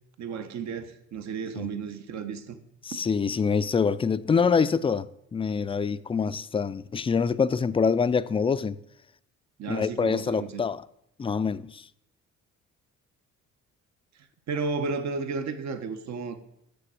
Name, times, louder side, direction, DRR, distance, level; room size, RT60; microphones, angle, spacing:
voice 1, 0.2-2.6 2.9-3.0 6.2-6.3 9.6-10.6 14.1-16.4, right 5 dB, 65° right, 1.0 m, -33 dB
voice 2, 2.8-8.8 9.7-10.8 11.2-11.8, left 5 dB, 20° left, 0.3 m, -25 dB
6.8 x 6.8 x 7.5 m
cardioid pair, 90°, 30 cm